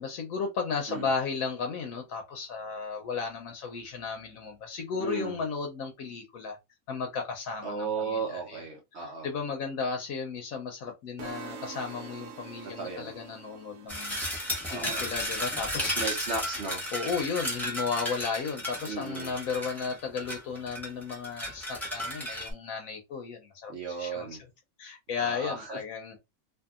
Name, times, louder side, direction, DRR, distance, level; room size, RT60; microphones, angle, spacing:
voice 1, 0.0-6.6 6.9-8.6 8.9-14.2 14.7-15.9 16.9-24.4 24.8-26.2, left 5 dB, 70° left, 1.0 m, -34 dB
voice 2, 5.0-5.4 7.6-9.3 12.6-13.1 14.7-15.0 15.8-16.9 18.9-19.3 23.7-24.4 25.2-25.8, right 4 dB, 55° right, 0.9 m, -35 dB
sound 1, 11.2-15.3, right 5 dB, 80° right, 1.1 m, -45 dB
sound 2, 13.9-22.5, equal, ahead, 0.9 m, -34 dB
2.7 x 2.6 x 2.3 m
omnidirectional pair, 1.6 m